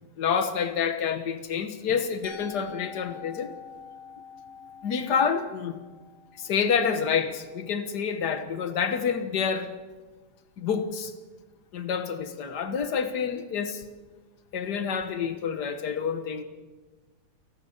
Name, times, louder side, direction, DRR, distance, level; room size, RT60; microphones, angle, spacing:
voice 1, 0.2-3.5 4.8-5.8 6.4-9.7 10.6-11.1 11.7-13.8 14.5-16.4, left 6 dB, 50° left, 9 dB, 1.3 m, -28 dB
Musical instrument, 2.2-8.1, left 6 dB, 20° right, 3.6 m, -47 dB
29.0 x 12.0 x 8.1 m, 1.3 s
omnidirectional pair, 3.4 m